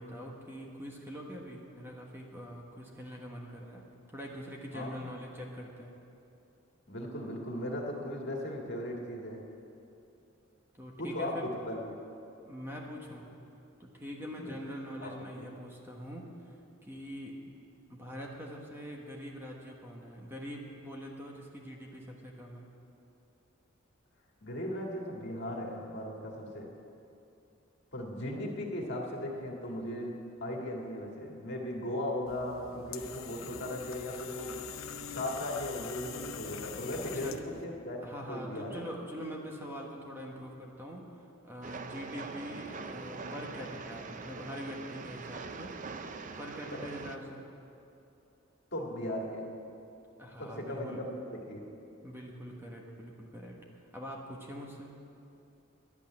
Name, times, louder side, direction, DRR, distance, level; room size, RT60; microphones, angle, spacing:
voice 1, 0.0-3.8 4.1-5.9 10.8-11.4 12.4-13.3 13.8-17.5 17.9-22.7 37.0-37.4 38.0-45.8 46.2-47.4 50.2-51.0 52.0-53.6 53.9-55.0, equal, 10° right, -1 dB, 1.3 m, -44 dB
voice 2, 4.7-5.1 6.9-9.4 11.0-11.8 15.0-15.1 24.4-26.7 27.9-34.7 35.1-38.0 38.3-38.8 46.7-46.9 48.7-49.5 50.4-51.6, left 1 dB, 60° left, -1 dB, 1.9 m, -37 dB
sound 1, 32.3-37.6, left 7 dB, 80° left, 0.7 m, -44 dB
Train, 41.6-47.2, right 4 dB, 40° right, 0.5 m, -43 dB
10.5 x 8.4 x 9.5 m, 2.7 s
head